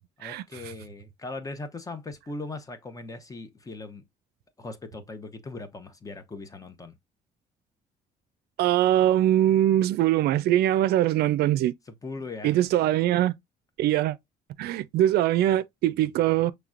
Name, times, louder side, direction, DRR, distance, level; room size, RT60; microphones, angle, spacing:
voice 1, 0.2-4.0 4.6-6.9 12.0-12.6, left 3 dB, 20° left, 0.8 m, -39 dB
voice 2, 8.6-11.7 12.4-13.3 13.8-14.2 14.6-16.5, right 12 dB, 70° right, 0.4 m, -22 dB
5.9 x 3.2 x 2.4 m
cardioid pair, 110°, 17 cm